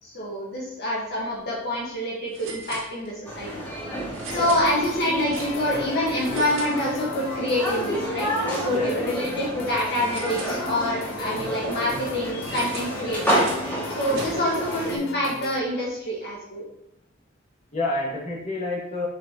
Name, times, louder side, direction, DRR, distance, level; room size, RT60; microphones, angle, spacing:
voice 1, 0.0-3.6 4.3-8.3 8.6-13.5 13.9-16.6, left 1 dB, 55° left, -5 dB, 1.5 m, -26 dB
sound 1, 1.1-1.3 1.6-1.7 2.3-3.4 4.1-5.8 6.1-7.3 7.6-9.0 10.0-11.1 12.4-14.7, right 3 dB, 85° right, 2.0 m, -41 dB
sound 2, 3.2-15.0, right 1 dB, 10° left, 2.2 m, -30 dB
sound 3, 4.3-15.6, left 3 dB, 90° left, 0.5 m, -38 dB
voice 2, 4.3-4.7 8.7-8.9 14.1-14.3 17.7-19.1, left 2 dB, 40° left, -4 dB, 1.9 m, -29 dB
6.5 x 6.3 x 2.9 m, 0.84 s
head